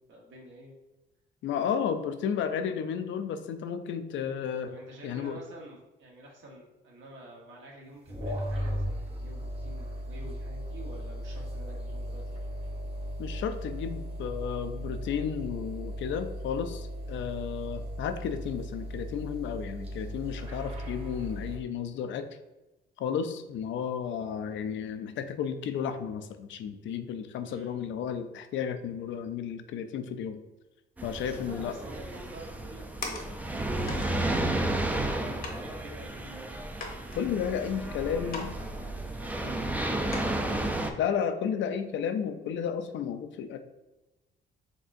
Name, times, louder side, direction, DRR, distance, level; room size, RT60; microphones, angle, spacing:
voice 1, 0.1-0.7 4.7-12.4 27.4-27.7 31.1-36.5 37.3-40.2, right 1 dB, 75° right, -1 dB, 1.2 m, -48 dB
voice 2, 1.4-4.7 5.0-5.4 13.2-22.3 23.0-30.4 31.0-31.7 37.1-38.5 41.0-43.6, left 7 dB, 70° left, 9 dB, 0.4 m, -33 dB
sound 1, 8.1-21.6, equal, 30° right, 0.9 m, -37 dB
sound 2, 31.0-40.9, right 1 dB, 10° right, 0.4 m, -32 dB
sound 3, 32.5-33.5 33.9-34.1 34.9-35.0 35.4-35.7 36.2-36.3 36.8-37.8 38.3-38.6 38.9-39.0 39.5-39.6 40.1-40.6 41.1-41.2, left 3 dB, 45° left, 0.9 m, -40 dB
4.1 x 3.5 x 2.5 m, 1.0 s
cardioid pair, 90°, 20 cm